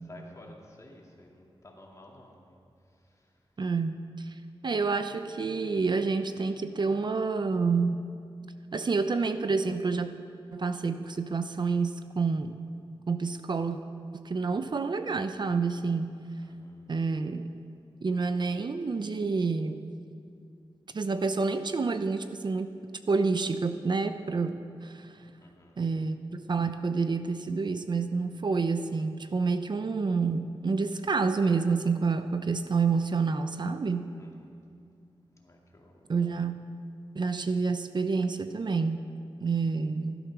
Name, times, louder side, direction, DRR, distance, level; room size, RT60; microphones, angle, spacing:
voice 1, 0.1-2.6 3.1-3.3 16.4-16.8 25.4-25.8 34.2-34.5 35.4-36.1, left 1 dB, 35° left, -1 dB, 2.4 m, -53 dB
voice 2, 3.6-4.3 4.6-8.0 8.7-10.1 10.5-12.6 13.1-13.8 14.1-16.2 16.9-17.5 18.0-19.8 20.9-22.7 23.1-25.1 25.8-34.0 36.1-36.7 37.2-39.0 39.4-40.2, right 4 dB, 50° right, 9 dB, 0.6 m, -28 dB
16.0 x 12.0 x 6.1 m, 2.4 s
wide cardioid pair, 115°, 10 cm